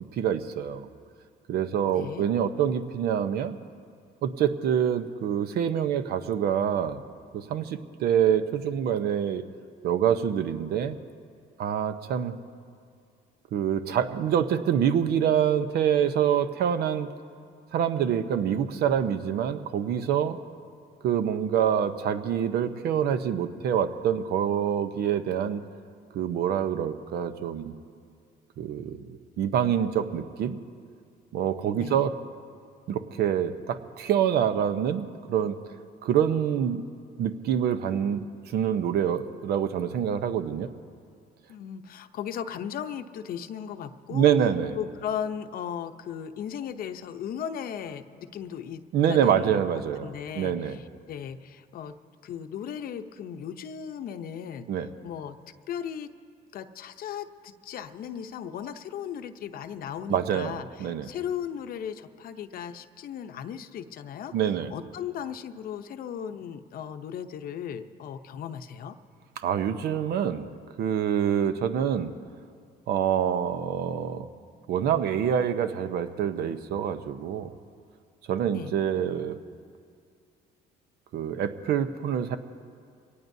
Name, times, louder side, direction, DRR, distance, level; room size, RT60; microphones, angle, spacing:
voice 1, 0.1-0.9 1.5-3.6 4.2-7.0 7.3-9.4 9.8-11.0 11.6-12.3 13.5-17.1 17.7-20.4 21.0-25.6 26.1-27.7 28.6-30.6 31.3-32.1 32.9-35.6 36.0-36.8 37.2-40.7 44.1-44.8 48.9-50.8 54.7-54.9 60.1-61.1 64.3-64.7 69.4-70.5 70.8-72.1 72.9-74.3 74.7-77.5 78.3-79.4 81.1-82.4, right 9 dB, 70° right, 10 dB, 0.8 m, -26 dB
voice 2, 1.9-2.2 31.7-32.0 41.5-44.3 44.7-48.8 49.1-49.6 50.0-51.9 52.2-55.3 55.7-56.1 56.5-64.3 64.7-69.0 78.4-78.7, left 8 dB, 60° left, 9 dB, 0.8 m, -37 dB
24.0 x 18.5 x 2.7 m, 2.2 s
cardioid pair, 110°, 17 cm